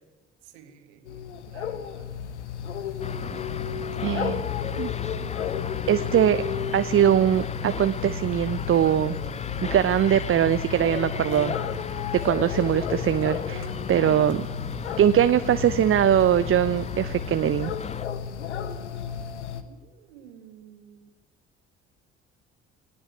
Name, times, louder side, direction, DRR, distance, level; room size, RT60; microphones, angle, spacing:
voice 1, 0.4-2.2 12.2-12.3 19.5-21.1, right 8 dB, 70° right, 8 dB, 2.1 m, -51 dB
sound 1, 1.0-19.6, left 8 dB, 80° left, 1.1 m, -33 dB
sound 2, 3.0-18.1, left 6 dB, 20° left, 0.6 m, -36 dB
voice 2, 4.0-4.5 4.8-4.9 5.9-6.4 6.7-9.2 9.6-11.6 12.2-14.5 15.0-17.7, right 10 dB, 40° right, 13 dB, 0.8 m, -22 dB
18.5 x 18.5 x 8.5 m, 1.2 s
figure-of-eight pair, 50°, 34 cm